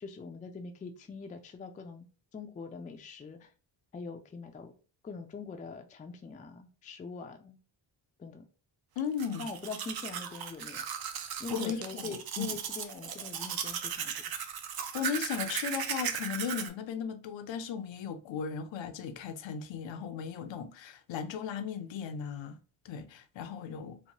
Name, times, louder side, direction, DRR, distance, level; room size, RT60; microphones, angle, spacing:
voice 1, 0.0-3.5 3.9-4.7 5.0-7.6 8.2-8.4 9.4-10.8 11.4-14.1, left 4 dB, 20° left, 0.3 m, -43 dB
voice 2, 9.0-9.5 11.5-12.6 14.9-22.6 22.8-24.0, left 7 dB, 70° left, 0.6 m, -36 dB
Domestic sounds home sounds, 9.0-16.7, right 8 dB, 55° right, 0.5 m, -37 dB
3.0 x 2.1 x 2.7 m
cardioid pair, 100°, 47 cm